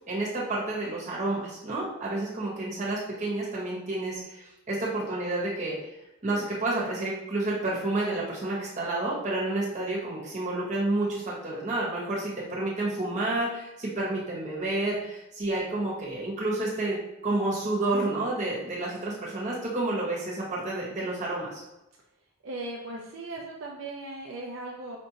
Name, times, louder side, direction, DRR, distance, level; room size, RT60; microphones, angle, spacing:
voice 1, 0.1-5.8 6.2-17.0 17.2-21.6, right 2 dB, 35° right, -6 dB, 1.2 m, -30 dB
voice 2, 22.4-25.0, right 2 dB, 65° right, -1 dB, 0.5 m, -38 dB
5.1 x 2.6 x 2.9 m, 0.96 s
head